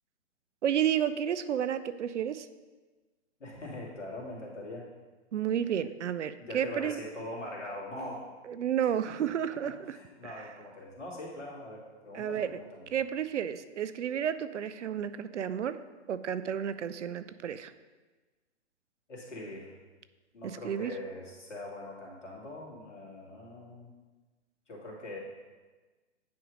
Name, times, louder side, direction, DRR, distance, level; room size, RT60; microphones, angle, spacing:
voice 1, 0.6-2.5 5.3-7.0 8.5-10.0 12.1-12.6 12.9-15.8 16.1-17.7 20.4-20.9, right 9 dB, 80° right, 13 dB, 0.5 m, -31 dB
voice 2, 3.4-4.9 6.4-8.3 9.6-12.9 19.1-19.7 20.3-23.9 24.7-25.2, left 1 dB, 85° left, -4 dB, 2.3 m, -42 dB
9.3 x 3.1 x 4.9 m, 1.3 s
hypercardioid pair, 125°, 35 cm